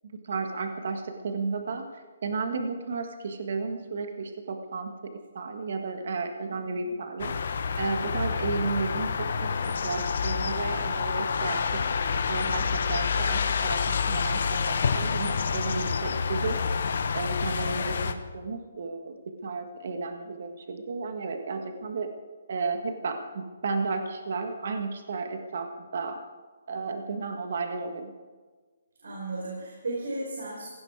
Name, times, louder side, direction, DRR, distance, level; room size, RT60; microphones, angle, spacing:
voice 1, 0.0-7.5 7.8-9.5 9.8-11.8 12.3-16.6 17.1-19.1 19.4-22.1 22.5-26.2 26.7-28.1, right 4 dB, 45° right, 6 dB, 1.5 m, -33 dB
voice 2, 6.5-6.9 17.5-18.1 29.0-30.7, right 2 dB, 85° right, -2 dB, 4.9 m, -36 dB
sound 1, 7.2-18.1, left 5 dB, 50° left, 1.0 m, -28 dB
17.0 x 17.0 x 4.8 m, 1.4 s
hypercardioid pair, 180°, 0 cm